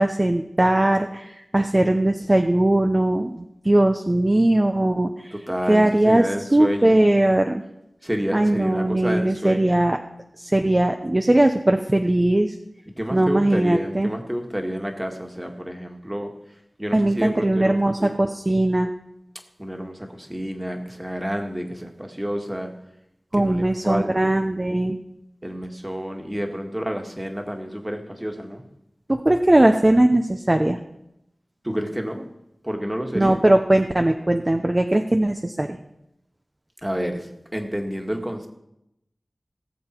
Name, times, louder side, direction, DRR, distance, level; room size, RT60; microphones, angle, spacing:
voice 1, 0.0-5.3 5.7-6.2 6.5-7.6 8.3-10.0 10.4-12.6 13.1-14.1 16.9-18.9 23.3-25.0 29.1-30.8 33.1-35.8, right 1 dB, 30° right, 5 dB, 0.8 m, -19 dB
voice 2, 5.3-7.0 8.0-9.8 13.0-16.3 16.8-18.1 19.6-22.7 23.3-24.3 25.4-28.6 31.6-32.3 32.6-33.4 36.8-38.5, equal, 15° right, 3 dB, 1.9 m, -29 dB
18.0 x 7.6 x 4.5 m, 0.86 s
wide cardioid pair, 55°, 0 cm